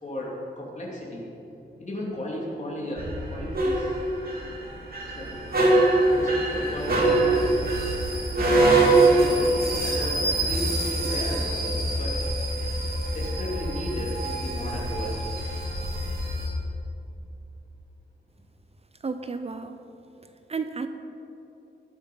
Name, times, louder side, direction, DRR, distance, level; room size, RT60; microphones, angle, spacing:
voice 1, 0.0-1.3 1.8-4.0 5.1-5.3 6.1-7.5 8.7-12.2 13.1-15.2, equal, 40° left, -3 dB, 2.9 m, -35 dB
sound 1, 3.0-16.5, right 2 dB, 55° right, 2.5 m, -24 dB
voice 2, 19.0-19.8 20.5-20.9, right 4 dB, 35° right, 8 dB, 0.5 m, -32 dB
19.0 x 8.1 x 5.5 m, 2.9 s
wide cardioid pair, 175°, 18 cm